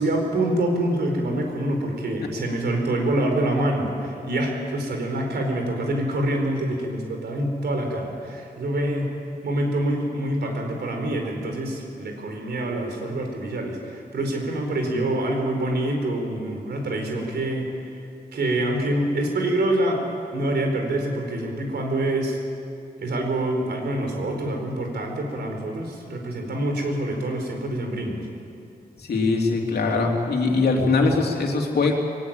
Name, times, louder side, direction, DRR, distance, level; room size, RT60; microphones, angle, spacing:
voice 1, 0.0-9.1 9.4-17.7 18.3-20.0 20.3-22.4 23.0-28.2, right 1 dB, 80° right, 2 dB, 4.5 m, -26 dB
voice 2, 29.0-31.9, left 3 dB, 75° left, 1 dB, 3.2 m, -21 dB
22.0 x 18.0 x 9.1 m, 2.5 s
wide cardioid pair, 135°, 17 cm